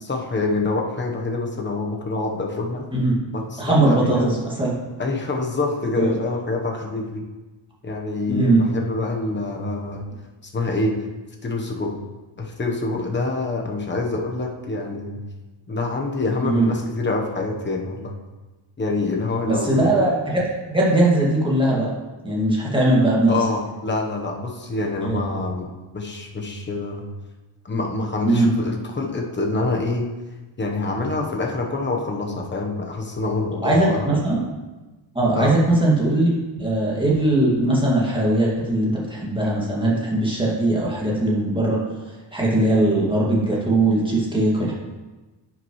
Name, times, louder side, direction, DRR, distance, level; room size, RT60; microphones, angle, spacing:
voice 1, 0.0-2.9 3.3-4.3 5.0-7.2 7.8-10.0 10.5-11.0 11.4-11.9 12.4-15.2 15.7-18.2 18.8-19.8 23.3-27.0 27.6-30.1 30.6-34.1 35.3-35.6, left 3 dB, 25° left, 1 dB, 1.0 m, -26 dB
voice 2, 3.6-4.7 6.0-6.1 8.3-8.6 16.4-16.7 19.5-20.4 20.7-21.9 22.2-23.3 25.0-25.2 28.3-28.5 33.6-34.4 35.1-36.3 36.6-41.8 42.3-44.7, right 1 dB, 10° right, -6 dB, 2.1 m, -20 dB
9.7 x 6.1 x 3.1 m, 1.2 s
wide cardioid pair, 120°, 47 cm